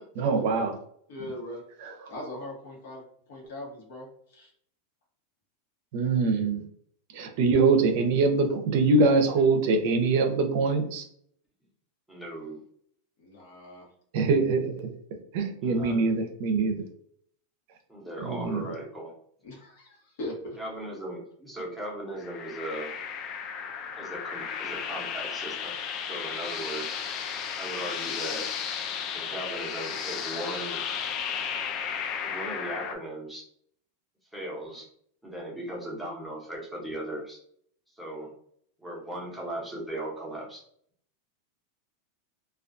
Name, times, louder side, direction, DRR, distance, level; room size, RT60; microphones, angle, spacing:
voice 1, 0.2-0.8 5.9-6.6 7.1-11.0 14.1-14.9 15.3-16.8 18.2-18.6, right 3 dB, 55° right, 5 dB, 0.5 m, -23 dB
voice 2, 1.1-1.6 2.1-3.0 3.3-4.5 13.2-13.9 19.4-20.6, left 1 dB, 65° left, 0 dB, 1.0 m, -40 dB
voice 3, 12.1-12.6 15.6-16.1 17.9-19.1 20.6-22.9 24.0-27.0 27.6-28.5 29.1-30.8 32.2-33.4 34.3-34.9 35.2-37.4 37.9-38.3 38.8-40.6, right 1 dB, ahead, -5 dB, 0.8 m, -38 dB
sound 1, 22.2-33.0, left 7 dB, 35° left, 0.3 m, -34 dB
2.3 x 2.2 x 2.5 m, 0.65 s
supercardioid pair, 150°, 0 cm